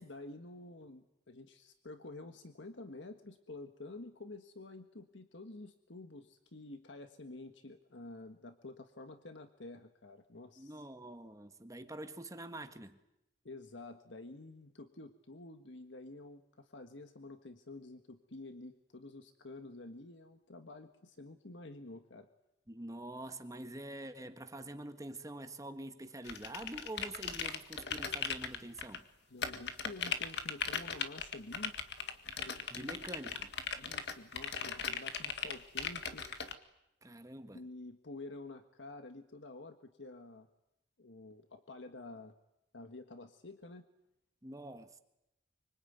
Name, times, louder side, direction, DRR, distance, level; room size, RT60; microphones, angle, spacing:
voice 1, 0.0-10.8 13.4-22.3 29.3-31.8 32.5-33.0 33.7-36.3 37.5-40.5 41.0-42.3 42.7-43.9, left 2 dB, 85° left, 1.6 m, -50 dB
voice 2, 10.6-13.0 22.7-29.1 32.7-33.5 37.0-37.6 44.4-45.0, right 1 dB, 20° right, 1.6 m, -46 dB
sound 1, 26.2-29.0 29.4-36.5, left 6 dB, 65° left, 1.9 m, -38 dB
25.0 x 25.0 x 9.4 m
head